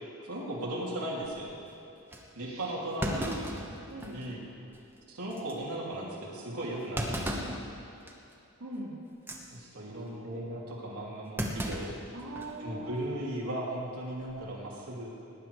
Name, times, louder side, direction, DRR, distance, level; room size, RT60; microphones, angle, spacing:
voice 1, 0.3-1.5 2.3-3.3 4.1-4.4 5.1-7.3 9.5-11.9 12.6-15.1, right 1 dB, 90° right, -5 dB, 2.8 m, -37 dB
Thump thud, 1.5-1.6 2.1-2.2 3.0-4.3 4.7-4.8 5.3-5.5 6.9-7.6 8.1-8.3 9.1-9.4 11.4-12.6 12.9-13.0 14.1-14.5, equal, 10° right, 1.0 m, -35 dB
voice 2, 2.3-2.8 3.1-3.6 3.9-4.3 7.3-7.5 8.6-9.0 12.1-13.0, right 1 dB, 70° right, -7 dB, 2.7 m, -41 dB
18.0 x 10.0 x 4.7 m, 2.8 s
head